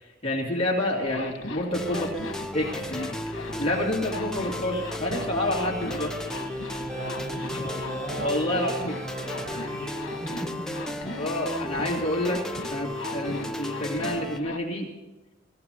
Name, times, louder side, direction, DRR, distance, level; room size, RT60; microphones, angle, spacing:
voice 1, 0.2-2.1 2.5-3.1 3.6-6.1 7.5-7.6 8.2-9.0 11.1-12.4 12.7-14.9, left 1 dB, 30° left, -4 dB, 2.9 m, -28 dB
Zipper (clothing), 1.0-14.6, left 2 dB, 85° left, 1.5 m, -39 dB
sound 1, 1.7-14.4, left 1 dB, 5° left, 0.6 m, -34 dB
sound 2, 4.8-10.3, right 3 dB, 70° right, 6.5 m, -44 dB
voice 2, 6.9-8.3 8.6-10.7, right 1 dB, 40° right, -3 dB, 6.2 m, -39 dB
22.5 x 14.5 x 3.0 m, 1.1 s
head